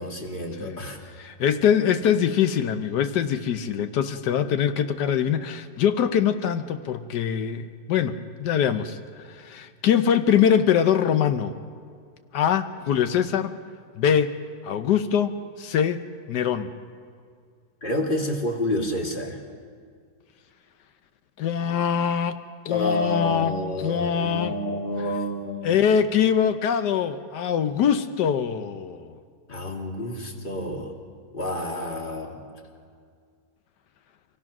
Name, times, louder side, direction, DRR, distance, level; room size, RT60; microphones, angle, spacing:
voice 1, 0.0-1.0 17.8-19.4 22.7-25.8 29.5-30.9 31.3-32.4, left 1 dB, 30° left, 1 dB, 2.2 m, -29 dB
voice 2, 1.2-11.6 12.3-13.5 14.0-14.4 14.6-16.0 16.3-16.7 21.4-24.5 25.6-29.1, left 8 dB, 85° left, 9 dB, 1.4 m, -23 dB
26.5 x 17.5 x 6.1 m, 2.1 s
omnidirectional pair, 1.7 m